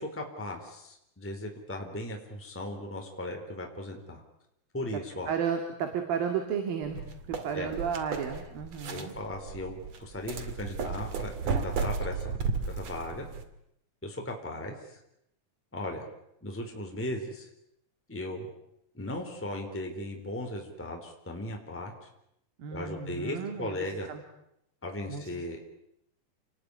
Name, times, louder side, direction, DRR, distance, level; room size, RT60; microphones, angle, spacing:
voice 1, 0.0-4.2 4.7-5.3 7.5-7.8 8.9-12.4 12.7-13.2 14.0-15.0 15.7-16.1 16.4-17.5 18.1-18.5 18.9-21.9 22.7-24.1 24.8-25.7, left 1 dB, 5° left, 2 dB, 3.7 m, -37 dB
voice 2, 5.3-9.1 22.6-23.8 24.1-24.2 25.1-25.3, right 7 dB, 85° right, 6 dB, 4.1 m, -33 dB
sound 1, 6.8-13.4, right 5 dB, 50° right, 3.3 m, -34 dB
30.0 x 20.0 x 9.9 m, 0.80 s
omnidirectional pair, 4.0 m